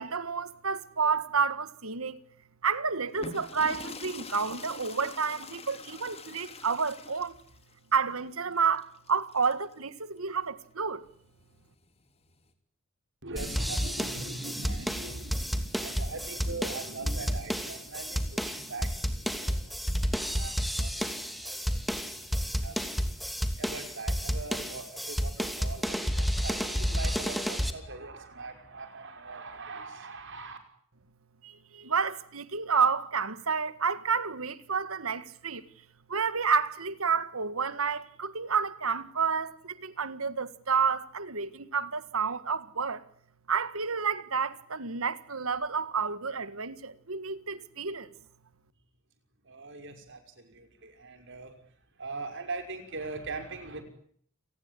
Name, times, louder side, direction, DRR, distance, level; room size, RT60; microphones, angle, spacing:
voice 1, 0.0-2.2 2.6-7.4 7.9-11.1 31.4-35.6 36.1-43.0 43.5-48.1, right 5 dB, 80° right, 1.7 m, -30 dB
sound 1, 3.1-9.7 11.0-12.5, left 3 dB, 30° left, 3.5 m, -45 dB
voice 2, 13.2-30.6 49.4-51.5 52.0-53.8, right 3 dB, 60° right, 5.7 m, -41 dB
sound 2, 13.4-27.7, equal, ahead, 2.8 m, -31 dB
29.0 x 19.5 x 9.9 m
head